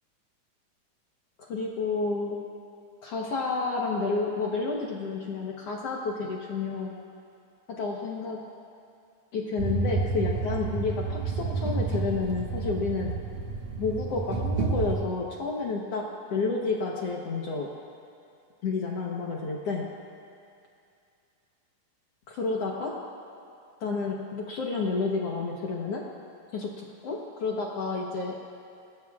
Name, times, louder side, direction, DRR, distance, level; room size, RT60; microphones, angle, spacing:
voice 1, 1.4-2.4 3.0-6.9 7.7-8.4 9.3-13.1 13.8-17.7 18.6-19.9 22.3-22.9 23.8-26.0 26.5-28.3, left 4 dB, 65° left, -2 dB, 1.6 m, -30 dB
sound 1, 9.6-15.0, right 4 dB, 65° right, 2.0 m, -30 dB
26.5 x 19.5 x 2.4 m, 2.5 s
omnidirectional pair, 4.0 m